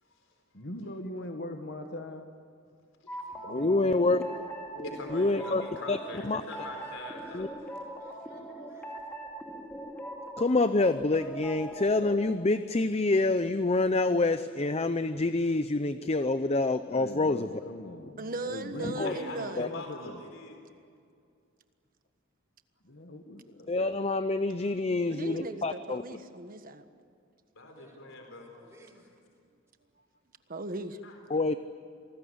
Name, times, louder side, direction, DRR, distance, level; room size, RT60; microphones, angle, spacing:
voice 1, 0.0-0.6 3.0-3.4 3.9-4.4 4.7-7.5 8.0-8.4 8.7-8.8 19.0-20.6 27.5-28.5 31.0-31.2, left 2 dB, 70° left, 3 dB, 4.2 m, -44 dB
voice 2, 0.5-2.3 3.4-4.2 5.4-5.7 16.9-20.2 22.8-23.7, left 1 dB, 55° left, 5 dB, 1.8 m, -41 dB
sound 1, 3.1-12.3, right 1 dB, 10° left, 2.5 m, -42 dB
voice 3, 3.4-4.2 5.1-5.6 5.9-6.0 6.2-6.4 7.3-7.5 10.4-17.5 18.8-19.1 19.6-19.7 23.7-26.0 31.3-31.5, left 2 dB, 30° left, 11 dB, 0.6 m, -27 dB
voice 4, 6.2-9.2 27.7-28.0 28.5-29.1, right 1 dB, 15° right, -5 dB, 5.2 m, -58 dB
voice 5, 18.2-19.7 25.1-26.8 30.5-31.0, right 2 dB, 45° right, 9 dB, 1.4 m, -38 dB
27.5 x 20.0 x 9.5 m, 2.3 s
head